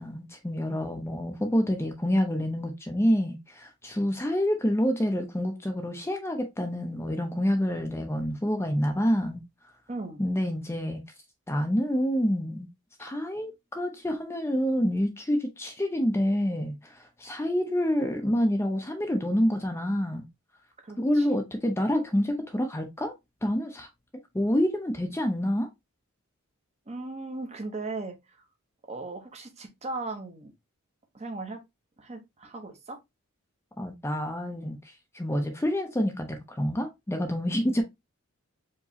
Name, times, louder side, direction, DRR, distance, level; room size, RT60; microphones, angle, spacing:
voice 1, 0.0-9.4 10.2-11.0 11.5-12.7 13.0-20.2 21.0-23.1 23.4-23.9 24.3-25.7 33.8-34.8 35.1-37.8, equal, 10° left, 0.6 m, -27 dB
voice 2, 9.9-10.2 13.0-13.1 20.8-21.3 26.9-28.4 28.9-30.5 31.1-31.6 32.0-33.0, right 3 dB, 30° right, 0.9 m, -38 dB
4.7 x 3.0 x 2.7 m
head